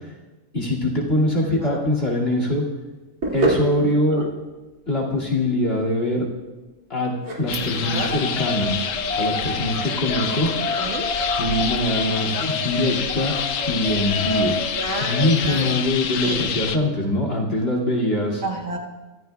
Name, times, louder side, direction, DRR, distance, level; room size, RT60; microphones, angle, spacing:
voice 1, 0.5-2.6 3.3-4.3 4.9-6.3 6.9-8.9 9.1-10.6 11.4-13.4 13.6-14.6 15.0-18.4, left 1 dB, 45° left, -1 dB, 2.7 m, -23 dB
sound 1, 2.2-9.8, right 1 dB, 75° right, 2.9 m, -30 dB
voice 2, 3.8-4.3 7.6-8.2 10.6-11.1 14.8-15.8 16.2-16.5 18.4-18.8, right 2 dB, 60° right, 0 dB, 2.0 m, -30 dB
sound 2, 7.5-16.8, left 7 dB, 70° left, 1.1 m, -27 dB
sound 3, 8.1-14.7, left 1 dB, 5° left, 0.8 m, -30 dB
24.0 x 14.0 x 2.3 m, 1.2 s
omnidirectional pair, 1.5 m